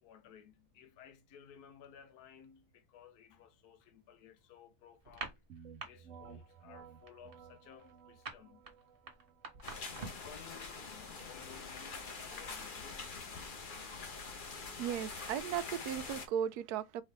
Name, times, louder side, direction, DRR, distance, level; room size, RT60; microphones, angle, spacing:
voice 1, 0.0-5.4 5.8-8.6 10.0-14.0, left 8 dB, 80° left, 1.3 m, -58 dB
sound 1, 5.0-5.9 6.2-6.5 6.8-10.3, right 3 dB, 40° right, 1.4 m, -45 dB
sound 2, 5.5-15.1, right 7 dB, 60° right, 1.0 m, -58 dB
sound 3, 9.6-16.3, left 4 dB, 40° left, 0.9 m, -45 dB
voice 2, 14.8-17.0, right 9 dB, 80° right, 1.1 m, -36 dB
4.3 x 3.7 x 3.3 m
omnidirectional pair, 1.6 m